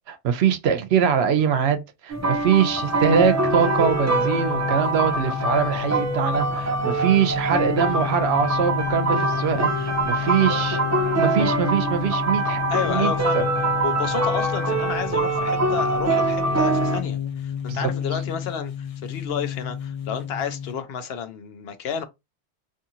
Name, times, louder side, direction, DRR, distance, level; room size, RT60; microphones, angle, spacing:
voice 1, 0.1-10.8 11.2-12.6 12.8-13.4 17.7-17.9, right 7 dB, 75° right, 0.8 m, -23 dB
sound 1, 2.1-17.0, right 2 dB, 25° right, 0.3 m, -24 dB
sound 2, 2.5-20.8, left 8 dB, 45° left, 0.5 m, -31 dB
voice 2, 12.7-22.0, left 7 dB, 70° left, 0.8 m, -31 dB
2.6 x 2.5 x 2.7 m
omnidirectional pair, 1.1 m